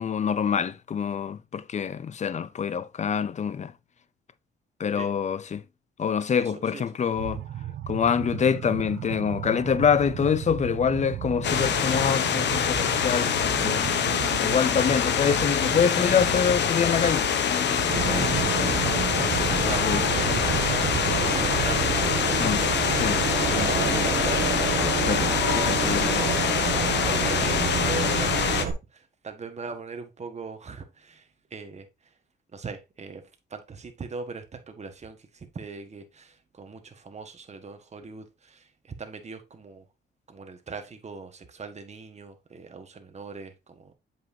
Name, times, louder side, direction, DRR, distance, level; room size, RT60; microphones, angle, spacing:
voice 1, 0.0-3.7 4.8-5.6 6.0-7.4 7.9-13.8 14.4-18.9 19.6-20.4 22.4-22.6 22.9-23.2 23.5-24.1 24.7-26.3, left 7 dB, 35° left, 0.6 m, -26 dB
voice 2, 6.4-6.8 19.6-22.2 25.0-26.4 27.0-28.5 28.9-32.1 32.5-33.2 33.5-39.8 40.3-43.9, right 4 dB, 35° right, 1.5 m, -40 dB
sound 1, 7.1-22.1, right 11 dB, 65° right, 0.8 m, -35 dB
sound 2, 11.4-28.6, left 8 dB, 60° left, 0.9 m, -25 dB
Insect / Frog, 17.9-28.7, right 7 dB, 50° right, 1.6 m, -28 dB
7.6 x 5.5 x 2.7 m
cardioid pair, 90°, 20 cm